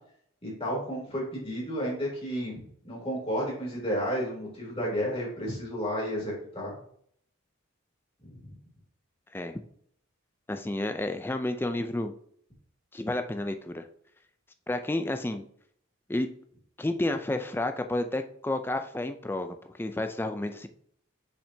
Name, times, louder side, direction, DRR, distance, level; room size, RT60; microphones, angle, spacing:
voice 1, 0.4-6.8 8.2-8.4, equal, 25° left, -3 dB, 2.9 m, -32 dB
voice 2, 10.5-12.1 12.9-13.9 14.7-15.5 16.1-16.3 16.8-20.7, left 1 dB, 10° left, 7 dB, 0.4 m, -31 dB
6.7 x 5.8 x 2.7 m, 0.64 s
head